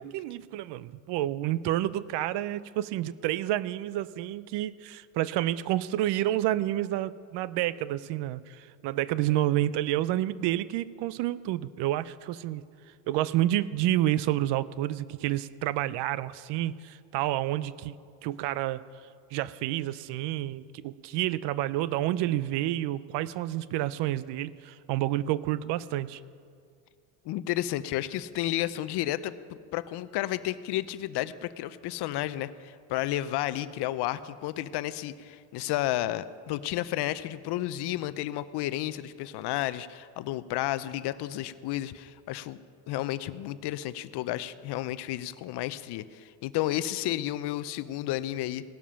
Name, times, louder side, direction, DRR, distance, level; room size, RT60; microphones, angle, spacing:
voice 1, 0.0-12.6 13.1-18.0 18.2-18.8 19.3-26.2, right 14 dB, 60° right, 18 dB, 0.6 m, -29 dB
voice 2, 27.2-29.3 29.7-42.6 42.9-48.6, left 14 dB, 55° left, 15 dB, 0.6 m, -32 dB
17.5 x 7.2 x 5.7 m, 2.2 s
supercardioid pair, 100°, 47 cm